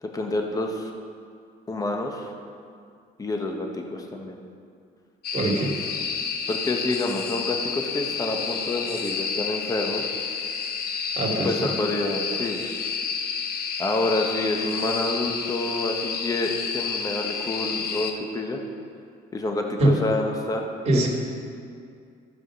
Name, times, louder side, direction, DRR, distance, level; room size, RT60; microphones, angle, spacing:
voice 1, 0.0-0.9 1.7-2.3 3.2-4.4 6.5-10.1 11.4-12.6 13.8-18.6 19.3-20.6, left 2 dB, 20° left, 2 dB, 1.2 m, -28 dB
sound 1, 5.2-18.1, left 6 dB, 65° left, 0.8 m, -30 dB
voice 2, 5.3-5.7 11.1-11.7 19.8-19.9 20.9-21.1, right 1 dB, 40° right, -3 dB, 2.5 m, -22 dB
14.0 x 5.0 x 6.2 m, 2.3 s
cardioid pair, 110°, 17 cm